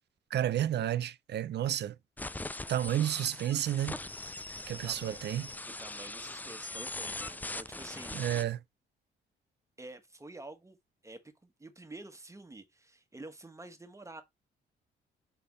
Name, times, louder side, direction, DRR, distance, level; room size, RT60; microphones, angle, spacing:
voice 1, 0.3-2.0 2.7-4.0 4.7-5.5 8.1-8.6, right 11 dB, 60° right, 0.6 m, -31 dB
sound 1, 2.2-8.4, left 2 dB, 10° left, 0.3 m, -41 dB
voice 2, 4.8-5.3 5.8-8.2 9.8-10.8 11.0-14.2, right 2 dB, 15° right, 1.6 m, -48 dB
7.0 x 3.6 x 4.0 m
cardioid pair, 90°, 20 cm